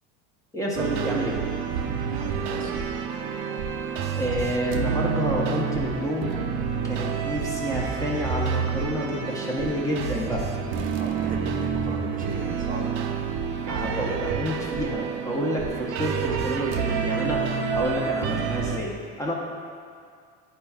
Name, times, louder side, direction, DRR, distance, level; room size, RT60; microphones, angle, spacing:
voice 1, 0.5-1.4 4.1-6.3 6.8-10.5 13.7-17.4 17.7-19.3, equal, 10° left, -3 dB, 0.8 m, -29 dB
sound 1, 0.7-18.8, right 6 dB, 75° right, 0.6 m, -28 dB
voice 2, 2.0-3.0 10.9-13.0, right 2 dB, 25° right, -2 dB, 0.8 m, -38 dB
9.3 x 4.4 x 2.4 m, 2.2 s
supercardioid pair, 110°, 31 cm